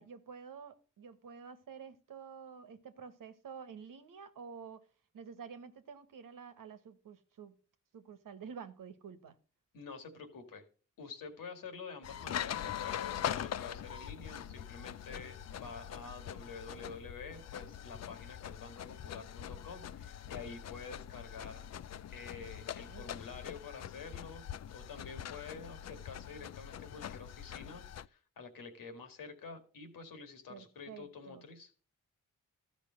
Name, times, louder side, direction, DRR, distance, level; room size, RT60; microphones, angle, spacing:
voice 1, 0.0-4.9 5.1-7.6 7.9-9.4 22.9-23.1 30.5-31.5, right 6 dB, 75° right, 1.4 m, -49 dB
voice 2, 9.7-10.7 11.0-21.7 22.1-31.7, left 4 dB, 80° left, 2.0 m, -48 dB
sound 1, 12.0-28.1, left 10 dB, 50° left, 0.5 m, -43 dB
13.5 x 5.2 x 6.3 m
supercardioid pair, 45°, 33 cm